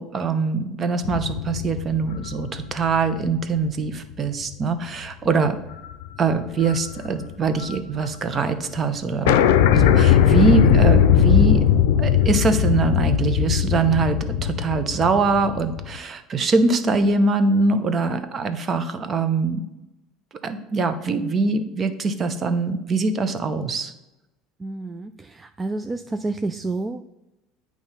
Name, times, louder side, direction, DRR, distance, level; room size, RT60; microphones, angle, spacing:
voice 1, 0.0-5.6 6.2-9.4 9.7-11.6 12.0-19.6 20.4-23.9, right 4 dB, 35° right, 9 dB, 0.8 m, -23 dB
sound 1, 1.0-3.6 4.1-4.2 5.7-6.1 6.3-7.8 8.1-8.2 8.3-8.4 8.8-8.9 9.3-16.0, left 9 dB, 85° left, 0.5 m, -19 dB
voice 2, 24.6-27.0, right 2 dB, 20° right, 8 dB, 0.3 m, -29 dB
8.7 x 3.1 x 5.5 m, 0.94 s
supercardioid pair, 100°, 0 cm